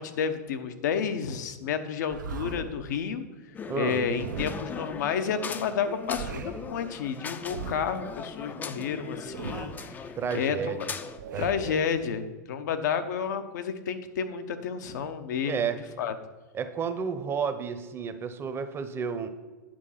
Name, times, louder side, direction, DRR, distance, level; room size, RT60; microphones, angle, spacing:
voice 1, 0.0-3.2 3.7-10.9 11.4-15.7 16.0-16.1, left 7 dB, 75° left, 9 dB, 0.8 m, -31 dB
sound 1, 2.1-2.8 3.9-4.8 5.8-6.7 7.4-8.0 9.1-9.9 11.0-11.8, right 5 dB, 85° right, 0.8 m, -39 dB
sound 2, 3.5-11.2, left 5 dB, 20° left, 0.5 m, -40 dB
voice 2, 3.7-4.1 10.1-10.8 11.3-11.8 15.4-15.8 16.5-19.3, right 6 dB, 25° right, 9 dB, 0.8 m, -31 dB
8.9 x 4.7 x 5.7 m, 1.3 s
hypercardioid pair, 115°, 10 cm